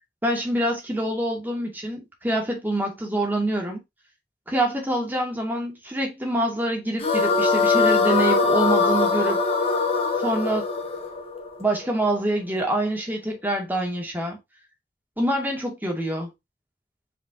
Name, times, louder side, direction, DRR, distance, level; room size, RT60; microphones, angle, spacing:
voice 1, 0.2-3.8 4.5-9.4 10.2-10.6 11.6-14.4 15.2-16.3, right 1 dB, 10° right, 2.4 m, -26 dB
sound 1, 7.0-12.2, left 4 dB, 35° left, 1.3 m, -22 dB
7.5 x 5.0 x 2.9 m
head